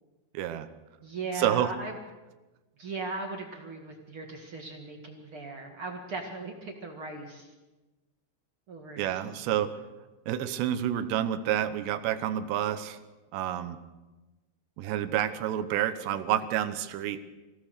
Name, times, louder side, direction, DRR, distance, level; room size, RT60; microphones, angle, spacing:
voice 1, 0.3-0.7 1.4-1.7 9.0-9.7 10.3-13.0 13.3-13.8 14.8-17.2, right 11 dB, 75° right, 11 dB, 3.0 m, -29 dB
voice 2, 1.0-1.9 2.8-7.5 8.7-9.6, right 3 dB, 45° right, 2 dB, 1.8 m, -38 dB
25.0 x 16.5 x 6.6 m, 1.2 s
omnidirectional pair, 5.2 m